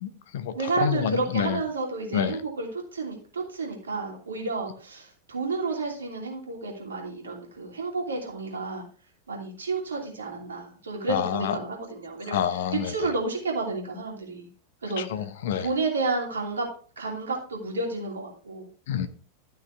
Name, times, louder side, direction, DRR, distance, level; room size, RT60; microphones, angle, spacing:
voice 1, 0.0-0.5 0.8-1.6 2.1-2.4 11.1-11.5 12.3-12.9 15.0-15.7 18.9-19.1, left 9 dB, 55° left, 0.9 m, -28 dB
voice 2, 0.5-8.8 9.3-14.5 14.8-15.3 15.6-16.7 17.0-18.7, right 3 dB, 70° right, 2.9 m, -31 dB
12.5 x 6.4 x 3.4 m
figure-of-eight pair, 90°, 0 cm